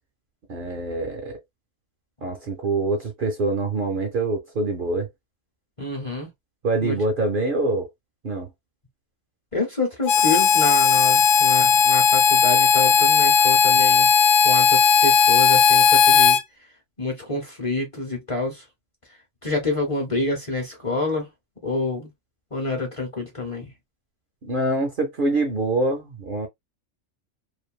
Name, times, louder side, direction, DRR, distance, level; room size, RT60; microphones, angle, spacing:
voice 1, 0.5-1.4 2.2-5.1 6.6-7.9 8.2-8.5 24.4-26.5, right 2 dB, 50° right, 0.7 m, -25 dB
voice 2, 5.8-6.3 6.8-7.0 9.5-14.1 14.4-16.4 17.0-18.6 19.4-21.3 21.6-22.1 22.5-23.7, left 2 dB, 30° left, 0.9 m, -27 dB
Harmonica, 10.1-16.4, left 7 dB, 80° left, 1.0 m, -16 dB
2.6 x 2.5 x 2.3 m
omnidirectional pair, 1.3 m